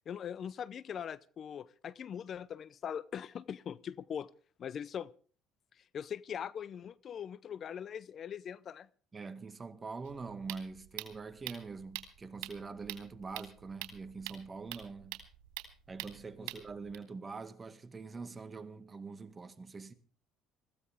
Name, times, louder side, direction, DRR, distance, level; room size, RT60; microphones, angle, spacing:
voice 1, 0.1-4.3 4.6-5.1 5.9-8.9 16.4-16.5, left 8 dB, 45° left, 0.6 m, -41 dB
voice 2, 9.1-15.2 15.9-19.9, right 4 dB, 25° right, 1.9 m, -44 dB
sound 1, 10.0-17.0, right 16 dB, 90° right, 3.6 m, -45 dB
21.0 x 15.5 x 3.6 m
supercardioid pair, 95°, 0 cm